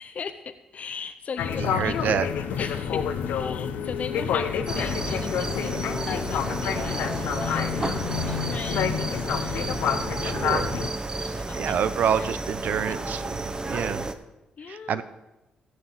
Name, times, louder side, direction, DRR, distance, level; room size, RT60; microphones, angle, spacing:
voice 1, 0.0-2.1 2.6-9.9 11.2-11.8 12.1-12.3 14.6-15.0, left 6 dB, 55° left, 9 dB, 0.8 m, -38 dB
sound 1, 1.4-10.9, left 7 dB, 85° left, 0.9 m, -28 dB
voice 2, 1.6-2.3 10.2-10.7 11.2-14.1 14.7-15.0, right 8 dB, 70° right, 12 dB, 0.8 m, -28 dB
sound 2, 4.7-14.1, right 2 dB, 25° right, 1.1 m, -32 dB
14.5 x 6.5 x 7.6 m, 0.97 s
cardioid pair, 70°, 3 cm